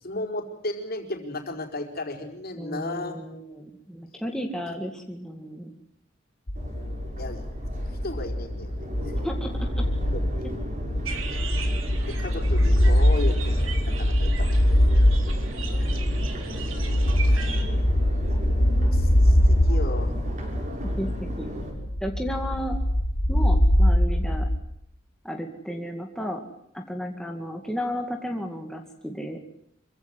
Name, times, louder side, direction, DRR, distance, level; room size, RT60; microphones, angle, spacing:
voice 1, 0.0-3.1 6.7-7.4 7.9-9.1 10.0-10.5 12.1-14.6 18.3-18.6 18.9-20.1, left 1 dB, 50° left, 3 dB, 4.7 m, -35 dB
voice 2, 2.6-5.7 9.2-9.8 21.0-21.5 22.0-22.8 23.3-24.5 25.2-26.4 26.7-29.4, equal, 5° left, 2 dB, 2.2 m, -33 dB
sound 1, 6.5-24.7, equal, 70° left, 2.4 m, -23 dB
Crowd, 6.6-21.7, equal, 40° right, 7.0 m, -37 dB
sound 2, 11.0-17.6, right 5 dB, 80° right, 3.9 m, -39 dB
26.5 x 16.5 x 9.8 m, 0.75 s
head